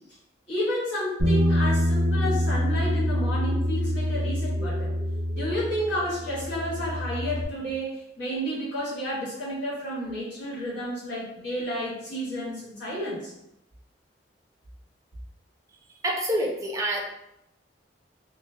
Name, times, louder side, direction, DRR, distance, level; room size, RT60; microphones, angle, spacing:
voice 1, 0.5-4.9 5.3-13.3, equal, 85° left, -9 dB, 1.5 m, -31 dB
Bass guitar, 1.2-7.4, equal, 85° right, 0.8 m, -26 dB
sound 1, 2.0-7.3, equal, 35° left, 1.0 m, -41 dB
voice 2, 16.0-17.0, right 1 dB, 20° right, -1 dB, 0.5 m, -26 dB
3.0 x 2.1 x 2.2 m, 0.81 s
head